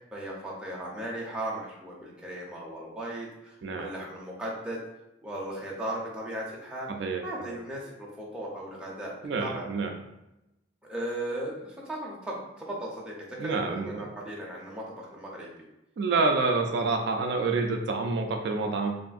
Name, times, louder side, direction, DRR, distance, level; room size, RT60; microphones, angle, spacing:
voice 1, 0.1-4.8 5.2-6.9 7.2-9.7 10.9-15.5, right 1 dB, 5° right, -5 dB, 0.6 m, -37 dB
voice 2, 6.9-7.6 9.2-9.9 13.4-14.1 16.0-19.0, right 3 dB, 65° right, 3 dB, 0.3 m, -28 dB
3.4 x 2.5 x 2.3 m, 0.92 s
head